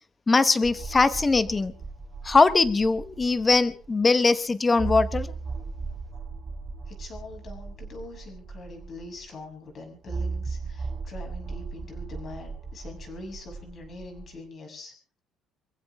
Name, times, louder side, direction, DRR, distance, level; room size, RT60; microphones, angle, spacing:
voice 1, 0.3-1.7 2.2-5.3, left 3 dB, 15° left, 13 dB, 1.1 m, -21 dB
sound 1, 0.6-3.9 4.2-4.3 4.7-9.3 10.1-14.4, right 4 dB, 30° right, 3.6 m, -36 dB
voice 2, 6.8-14.9, left 2 dB, 35° left, 4 dB, 6.7 m, -43 dB
26.5 x 15.5 x 3.5 m, 0.38 s
cardioid pair, 160°, 0 cm